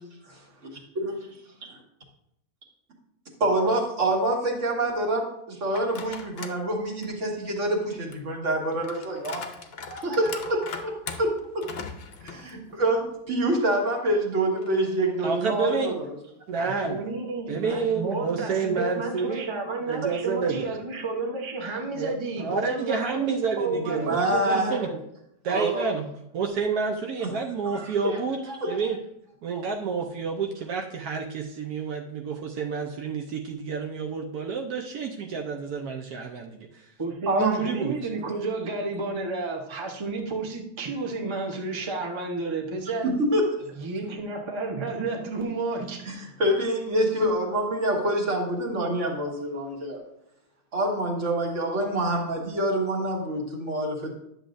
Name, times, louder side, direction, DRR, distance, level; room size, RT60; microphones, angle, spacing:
voice 1, 3.4-9.5 9.9-11.7 12.2-16.2 23.8-24.7 25.5-25.9 27.2-27.3 27.6-28.2 28.5-28.8 37.3-37.5 43.0-43.7 46.1-50.0 50.7-54.1, right 1 dB, 50° right, 0 dB, 1.8 m, -26 dB
sound 1, 5.7-6.6 7.0-13.1 13.5-13.6 14.6-16.0, left 5 dB, 55° left, 0.7 m, -41 dB
voice 2, 15.2-16.0 16.5-17.0 17.5-19.5 19.8-20.7 21.9-24.9 25.4-26.1 26.3-28.4 28.7-29.0 29.4-36.9 37.3-38.0, right 5 dB, 75° right, 2 dB, 1.2 m, -29 dB
voice 3, 16.5-25.0 37.0-43.1 43.8-46.0, right 3 dB, 25° right, 0 dB, 0.7 m, -31 dB
10.5 x 7.0 x 2.6 m, 0.77 s
omnidirectional pair, 1.7 m